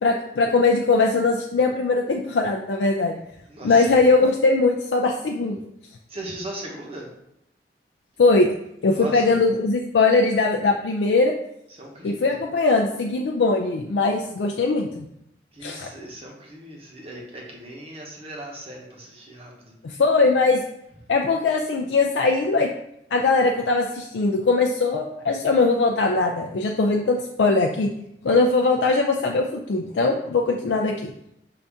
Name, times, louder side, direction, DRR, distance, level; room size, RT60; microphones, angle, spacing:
voice 1, 0.0-3.2 3.6-5.6 8.2-8.5 8.8-11.3 12.0-15.1 15.6-15.9 19.8-20.6 21.1-22.7 23.1-27.9 28.2-31.1, left 3 dB, 85° left, 1 dB, 0.4 m, -20 dB
voice 2, 3.5-4.0 6.1-7.1 8.9-9.3 11.8-12.3 15.5-19.7, right 1 dB, 35° right, -1 dB, 1.0 m, -38 dB
5.5 x 2.6 x 3.5 m, 0.79 s
head